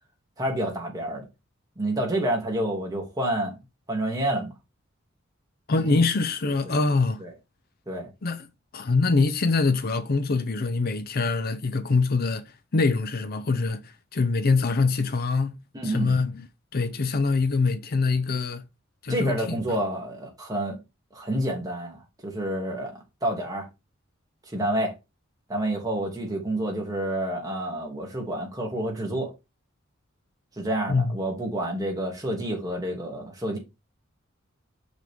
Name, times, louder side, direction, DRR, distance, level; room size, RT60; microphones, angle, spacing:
voice 1, 0.4-1.2 1.8-3.6 3.9-4.5 5.8-6.0 6.6-6.8 7.2-7.3 7.9-8.1 15.7-16.1 19.1-20.8 21.1-23.7 24.5-24.9 25.5-29.3 30.6-33.6, right 1 dB, 20° right, 2.6 m, -29 dB
voice 2, 5.7-7.2 8.2-8.5 8.7-15.6 15.8-16.5 16.7-18.6 19.0-19.8 30.9-31.2, left 3 dB, 50° left, 0.6 m, -24 dB
6.6 x 5.9 x 3.6 m
head